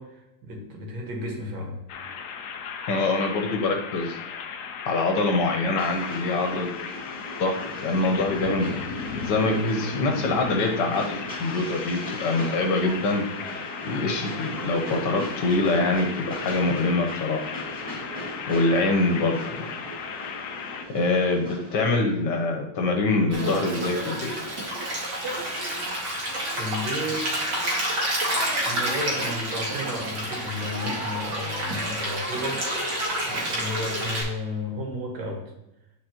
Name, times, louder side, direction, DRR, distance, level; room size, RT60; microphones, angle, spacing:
voice 1, 0.0-1.8 26.6-27.6 28.7-32.7 33.2-35.4, left 1 dB, 85° right, 0 dB, 2.2 m, -33 dB
sound 1, 1.9-20.8, left 6 dB, 80° left, 0.7 m, -36 dB
voice 2, 2.9-4.2 4.8-6.7 7.4-8.8 9.2-13.2 13.8-17.4 18.5-19.6 20.9-24.3, left 2 dB, 65° left, 3 dB, 1.5 m, -24 dB
Train, 5.8-21.9, equal, 5° left, 2.1 m, -39 dB
Stream, 23.3-34.2, right 1 dB, 60° right, 2.2 m, -29 dB
10.0 x 4.2 x 2.9 m, 0.89 s
omnidirectional pair, 2.1 m